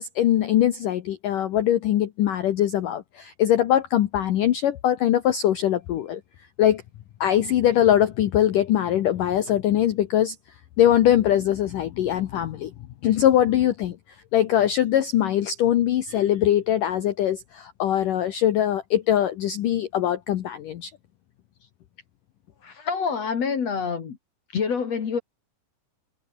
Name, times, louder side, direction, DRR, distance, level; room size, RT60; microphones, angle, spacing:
voice 1, 0.0-6.2 6.6-6.8 7.2-10.4 10.8-12.7 13.0-14.0 14.3-20.9, left 11 dB, 75° left, 2.0 m, -22 dB
voice 2, 22.6-24.2 24.5-25.2, left 6 dB, 45° left, 2.6 m, -26 dB
omnidirectional pair, 5.4 m